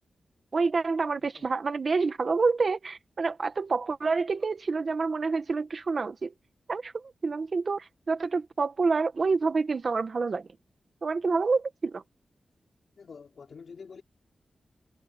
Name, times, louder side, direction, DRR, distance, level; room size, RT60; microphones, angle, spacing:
voice 1, 0.5-6.3 6.7-10.5 11.0-12.0, right 4 dB, 50° right, 1.6 m, -28 dB
voice 2, 13.0-14.0, left 5 dB, 65° left, 5.0 m, -47 dB
wide cardioid pair, 105°, 0 cm